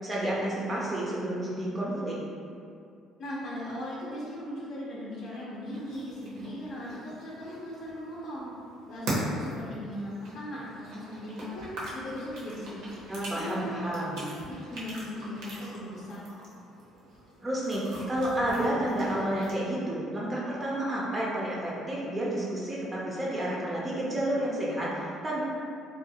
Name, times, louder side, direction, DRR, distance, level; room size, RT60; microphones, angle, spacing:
voice 1, 0.0-2.2 13.1-14.3 17.4-25.4, right 1 dB, 25° right, -6 dB, 0.4 m, -30 dB
voice 2, 3.2-8.5 8.9-11.7 11.9-12.9 13.3-16.3, left 1 dB, 60° left, -7 dB, 0.5 m, -38 dB
sound 1, 5.7-19.5, right 1 dB, 80° right, 0.7 m, -41 dB
2.5 x 2.2 x 2.7 m, 2.5 s
cardioid pair, 100°, 0 cm